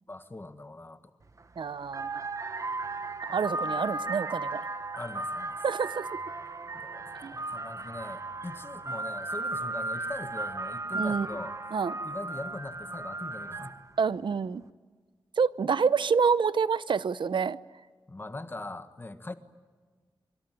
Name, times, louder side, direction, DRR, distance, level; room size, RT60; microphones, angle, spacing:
voice 1, 0.1-1.0 3.3-3.4 5.0-5.6 6.7-11.7 12.0-13.8 18.1-19.3, left 2 dB, 25° left, 10 dB, 1.5 m, -41 dB
sound 1, 1.2-1.4 1.8-13.9, right 2 dB, 40° right, 1.2 m, -36 dB
voice 2, 1.6-2.3 3.3-4.6 5.6-6.0 7.2-7.3 10.9-11.3 11.7-12.0 14.0-14.6 15.4-17.6, right 5 dB, 70° right, 16 dB, 0.8 m, -27 dB
25.0 x 24.5 x 9.2 m, 1.5 s
wide cardioid pair, 135°, 8 cm